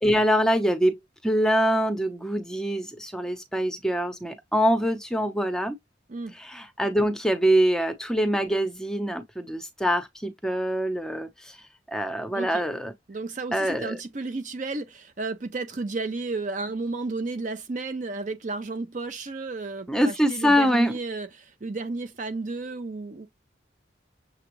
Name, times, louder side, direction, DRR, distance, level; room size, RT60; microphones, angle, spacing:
voice 1, 0.0-5.8 6.3-11.6 11.9-12.9 13.5-14.0 19.9-20.9, equal, 5° left, 0.7 m, -24 dB
voice 2, 13.1-23.3, right 3 dB, 40° right, 0.5 m, -33 dB
6.8 x 2.3 x 3.0 m
head